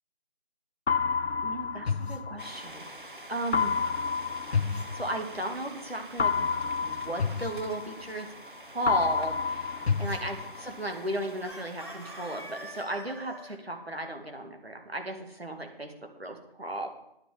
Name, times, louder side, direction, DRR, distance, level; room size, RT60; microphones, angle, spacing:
sound 1, 0.9-2.9 3.5-5.6 6.2-8.5 8.9-10.9, left 5 dB, 90° left, 0.5 m, -29 dB
voice 1, 1.4-2.8 3.3-3.8 4.6-6.5 6.8-8.3 8.7-16.9, right 1 dB, 75° right, 3 dB, 2.2 m, -35 dB
sound 2, 2.4-12.9, right 2 dB, 55° right, 0.7 m, -48 dB
Chicken rooster, 6.8-8.0 11.4-13.6, equal, 25° left, 1.1 m, -45 dB
9.9 x 6.6 x 7.5 m, 0.79 s
figure-of-eight pair, 175°, 31 cm